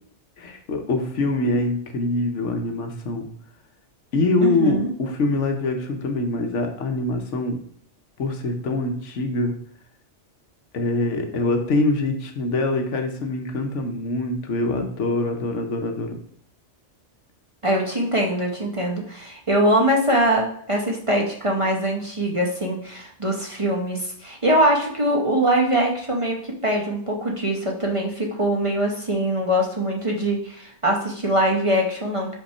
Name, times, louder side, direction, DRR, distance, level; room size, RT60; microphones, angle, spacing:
voice 1, 0.4-3.3 4.1-7.6 8.2-9.5 10.7-16.1, left 2 dB, 75° left, 4 dB, 1.2 m, -24 dB
voice 2, 4.4-4.9 17.6-32.4, right 1 dB, 30° right, -1 dB, 0.9 m, -22 dB
5.7 x 3.6 x 5.5 m, 0.64 s
omnidirectional pair, 1.3 m